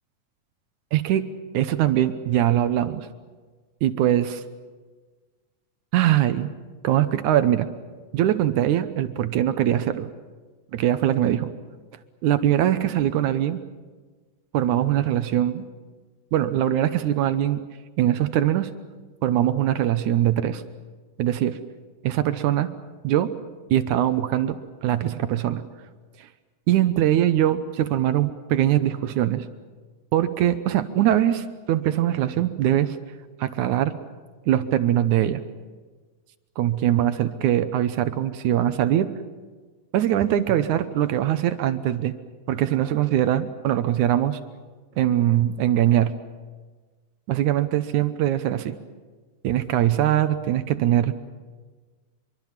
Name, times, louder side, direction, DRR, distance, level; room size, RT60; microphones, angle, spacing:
voice 1, 0.9-1.2 1.5-3.1 3.8-4.4 5.9-6.5 6.8-7.7 8.1-10.1 10.7-11.5 12.2-13.6 14.5-15.6 16.3-17.6 18.0-18.7 19.2-20.6 21.2-21.6 22.0-22.7 23.0-23.3 23.7-25.6 26.7-29.5 30.1-33.0 33.4-33.9 34.5-35.4 36.6-39.1 39.9-42.1 42.5-44.4 45.0-46.1 47.3-48.8 49.4-51.1, right 12 dB, 70° right, 11 dB, 2.0 m, -22 dB
25.0 x 24.0 x 7.4 m, 1.4 s
omnidirectional pair, 4.3 m